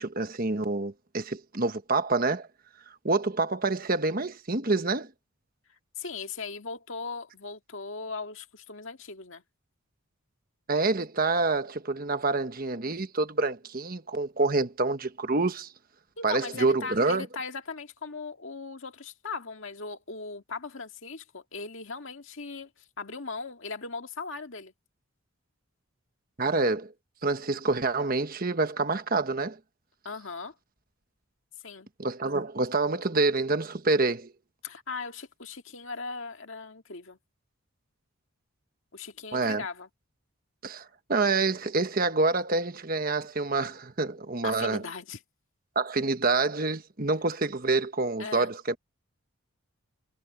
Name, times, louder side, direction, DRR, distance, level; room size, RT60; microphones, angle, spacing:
voice 1, 0.0-2.5 3.0-5.1 10.7-15.7 16.2-17.3 26.4-26.9 27.2-29.6 32.0-34.3 39.3-39.6 40.6-44.8 45.7-48.8, right 3 dB, 40° right, 1.3 m, -27 dB
voice 2, 6.0-9.4 16.2-22.7 23.0-24.7 30.0-30.5 31.6-31.9 34.6-37.2 38.9-39.9 44.4-45.2 48.2-48.5, left 4 dB, 60° left, 2.0 m, -38 dB
head